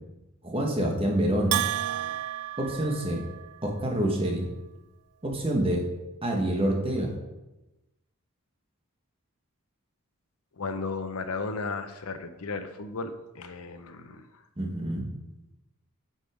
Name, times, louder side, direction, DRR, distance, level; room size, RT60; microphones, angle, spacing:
voice 1, 0.4-1.6 2.6-3.2 3.6-4.5 5.2-5.8 6.2-7.1 14.6-15.1, right 1 dB, 25° right, 0 dB, 1.4 m, -27 dB
Bell, 1.5-3.7, right 13 dB, 90° right, 0.3 m, -31 dB
voice 2, 10.6-14.2, left 4 dB, 80° left, 9 dB, 0.7 m, -34 dB
8.2 x 5.5 x 5.0 m, 1.0 s
head